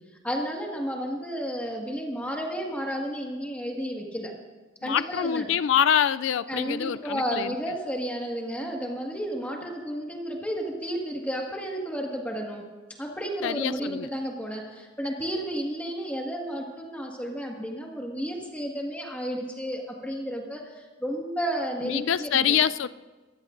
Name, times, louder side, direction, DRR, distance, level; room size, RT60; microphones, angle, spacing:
voice 1, 0.2-4.3 4.8-5.5 6.5-12.6 13.0-22.6, equal, 5° left, -1 dB, 1.7 m, -32 dB
voice 2, 4.8-7.5 13.4-14.1 21.8-22.9, left 9 dB, 65° left, 15 dB, 0.3 m, -25 dB
22.5 x 15.0 x 2.6 m, 1.3 s
head